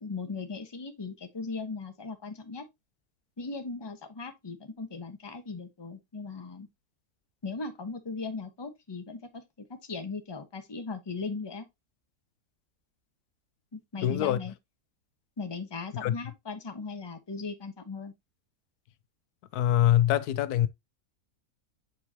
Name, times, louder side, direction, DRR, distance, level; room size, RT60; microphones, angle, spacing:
voice 1, 0.0-2.7 3.4-6.7 7.4-11.7 13.7-14.5 15.4-18.1, left 4 dB, 20° left, 0.9 m, -38 dB
voice 2, 14.0-14.4 16.0-16.1 19.5-20.7, left 12 dB, 90° left, 1.1 m, -24 dB
7.7 x 4.7 x 2.8 m
omnidirectional pair, 1.6 m